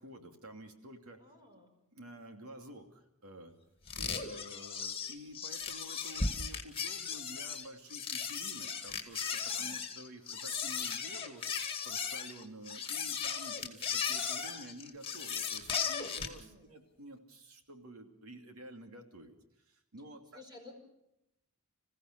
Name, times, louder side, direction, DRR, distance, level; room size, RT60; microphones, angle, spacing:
voice 1, 0.0-1.2 1.9-3.5 3.9-11.4 11.8-19.4 19.7-20.4, right 1 dB, 75° right, 5 dB, 2.8 m, -50 dB
voice 2, 1.2-1.7 9.5-9.8 16.3-16.8 20.3-20.7, left 2 dB, 20° right, 2 dB, 5.3 m, -55 dB
sound 1, 3.9-16.4, left 6 dB, 25° left, 2.2 m, -37 dB
27.0 x 15.5 x 6.7 m, 0.83 s
head